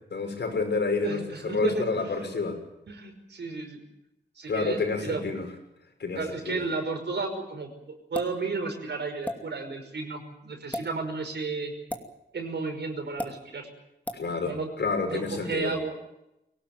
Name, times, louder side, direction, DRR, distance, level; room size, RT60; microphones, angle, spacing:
voice 1, 0.1-2.6 4.5-5.5 6.0-6.6 14.1-15.7, left 4 dB, 70° left, 4 dB, 6.2 m, -29 dB
voice 2, 1.0-2.3 2.9-3.8 4.4-5.2 6.2-7.7 8.1-11.7 12.3-13.7 14.4-14.7 15.0-16.0, right 4 dB, 75° right, 4 dB, 5.5 m, -33 dB
sound 1, 8.1-8.4 9.2-9.4 10.6-10.9 11.9-12.1 13.2-13.3 14.1-14.2, left 1 dB, 10° left, 2.7 m, -33 dB
24.0 x 18.5 x 9.1 m, 0.89 s
wide cardioid pair, 125°, 18 cm